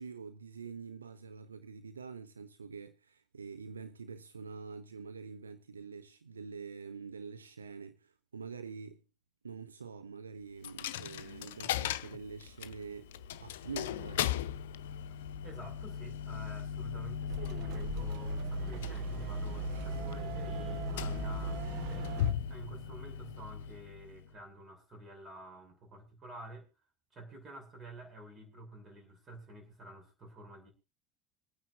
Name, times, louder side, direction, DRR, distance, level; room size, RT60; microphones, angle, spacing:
voice 1, 0.0-9.0 9.4-13.1 13.4-14.4, right 5 dB, 85° right, 0.6 m, -46 dB
Coin (dropping), 10.6-24.4, left 8 dB, 70° left, 0.6 m, -38 dB
voice 2, 15.2-26.6 27.1-30.7, right 1 dB, 35° right, 6.7 m, -50 dB
sound 1, 17.3-22.3, right 5 dB, 55° right, 1.2 m, -39 dB
26.0 x 9.5 x 2.6 m
figure-of-eight pair, 65°, 0 cm